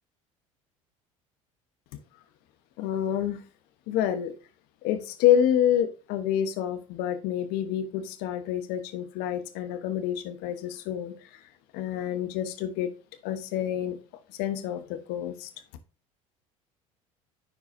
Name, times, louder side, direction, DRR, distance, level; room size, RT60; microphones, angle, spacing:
voice 1, 2.8-3.4 3.9-4.3 4.8-11.2 11.7-12.9 13.2-14.0 14.4-15.5, left 10 dB, 70° left, 8 dB, 1.2 m, -27 dB
10.0 x 4.6 x 2.7 m, 0.33 s
hypercardioid pair, 75°, 17 cm